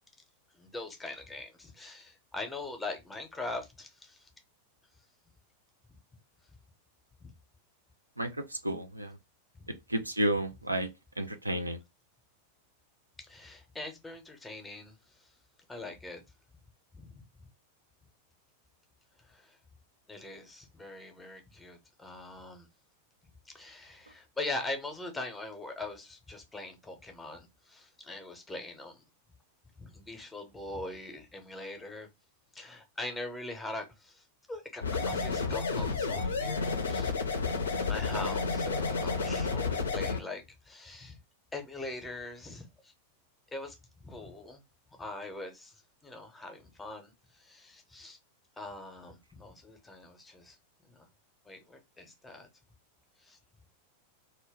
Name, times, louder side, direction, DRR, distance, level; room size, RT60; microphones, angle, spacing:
voice 1, 0.5-4.3 5.9-6.0 7.2-7.3 9.5-9.7 13.2-15.3 15.7-16.2 16.9-17.2 19.2-19.6 20.1-22.7 23.5-29.0 29.8-32.1 32.5-37.1 37.8-41.2 41.5-42.9 43.5-44.6 44.9-48.2 48.6-50.6 50.9-51.1 51.4-52.5 53.2-53.4, left 2 dB, 10° left, 0.7 m, -42 dB
voice 2, 8.2-9.1 9.9-10.9 11.2-11.8, right 1 dB, 85° right, 0.4 m, -31 dB
sound 1, 34.8-40.2, left 4 dB, 70° left, 0.5 m, -31 dB
2.2 x 2.2 x 3.4 m
figure-of-eight pair, 90°, 0 cm